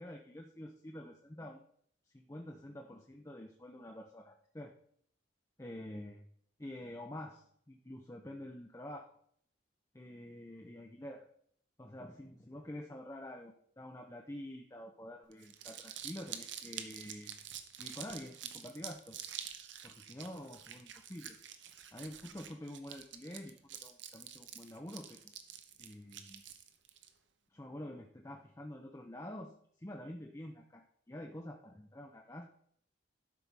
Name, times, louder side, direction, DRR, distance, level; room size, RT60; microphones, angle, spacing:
voice 1, 0.0-1.6 2.1-4.7 5.6-6.2 6.6-9.1 9.9-11.3 11.8-17.4 17.8-19.2 19.8-21.4 21.9-25.3 25.8-26.4 27.5-32.4, left 1 dB, 15° left, 2 dB, 0.6 m, -47 dB
Crumpling crinkling, 15.3-27.1, right 9 dB, 70° right, 0.9 m, -47 dB
12.0 x 5.6 x 4.7 m, 0.65 s
head